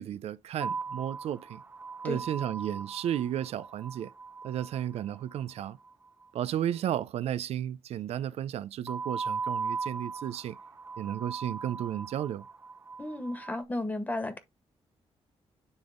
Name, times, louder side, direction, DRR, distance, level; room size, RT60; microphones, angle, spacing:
voice 1, 0.0-1.6 2.0-4.1 4.4-5.8 6.3-10.5 11.0-12.4, right 11 dB, 75° right, 0.4 m, -33 dB
sound 1, 0.6-5.9 8.9-13.6, right 4 dB, 20° right, 0.6 m, -38 dB
voice 2, 13.0-14.4, left 1 dB, 15° left, 1.7 m, -33 dB
9.7 x 3.6 x 3.7 m
cardioid pair, 120°, 11 cm